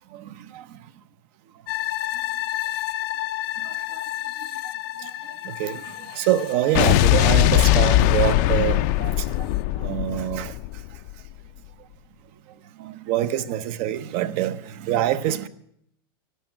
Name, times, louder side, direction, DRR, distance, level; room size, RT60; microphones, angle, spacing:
voice 1, 0.1-0.8 3.6-4.0 4.6-4.7 5.0-9.5 9.7-10.6 12.8-15.5, right 12 dB, 40° right, 0.7 m, -26 dB
sound 1, 1.7-9.0 9.4-9.5, left 14 dB, 75° left, 1.0 m, -32 dB
Explosion, 6.7-11.1, left 15 dB, 45° left, 0.5 m, -20 dB
12.5 x 12.0 x 8.7 m
supercardioid pair, 165°, 13 cm